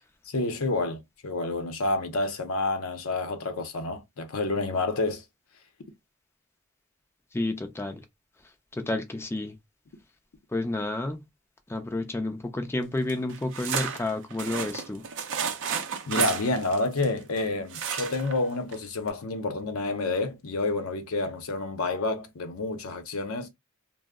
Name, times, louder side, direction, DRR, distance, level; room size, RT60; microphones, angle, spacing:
voice 1, 0.2-5.2 16.1-23.5, left 2 dB, 75° left, 0.6 m, -29 dB
voice 2, 7.3-8.0 8.7-9.5 10.5-11.2 11.7-15.0, left 2 dB, 10° left, 0.4 m, -30 dB
sound 1, 13.1-17.4 17.7-18.4 18.7-18.8 19.1-19.2, right 7 dB, 60° right, 0.4 m, -32 dB
2.2 x 2.0 x 3.4 m
head